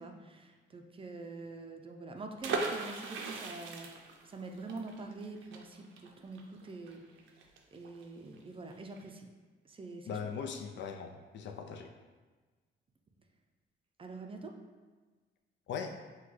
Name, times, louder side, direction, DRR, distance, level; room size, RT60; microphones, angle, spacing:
voice 1, 0.0-3.9 4.3-7.0 7.7-9.3 9.6-10.2 14.0-14.5, right 3 dB, 25° right, 3 dB, 0.5 m, -45 dB
sound 1, 2.4-8.0 8.3-8.4 8.7-9.0, right 4 dB, 80° right, 0.6 m, -39 dB
voice 2, 10.1-11.9 15.7-16.0, left 6 dB, 65° left, 5 dB, 0.5 m, -40 dB
6.0 x 2.3 x 3.1 m, 1.4 s
cardioid pair, 90°, 20 cm